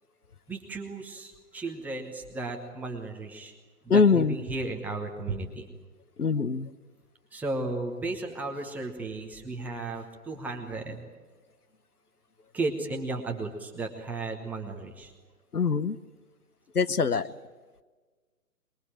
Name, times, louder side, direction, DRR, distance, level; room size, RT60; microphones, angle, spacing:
voice 1, 0.5-3.5 3.8-5.6 7.3-11.0 12.5-15.1 17.1-17.2, right 3 dB, 5° right, 1 dB, 1.1 m, -34 dB
voice 2, 3.9-4.4 6.2-6.7 15.5-16.0 16.7-17.3, left 5 dB, 70° left, 13 dB, 1.2 m, -23 dB
23.5 x 22.0 x 9.0 m, 1.4 s
figure-of-eight pair, 135°, 47 cm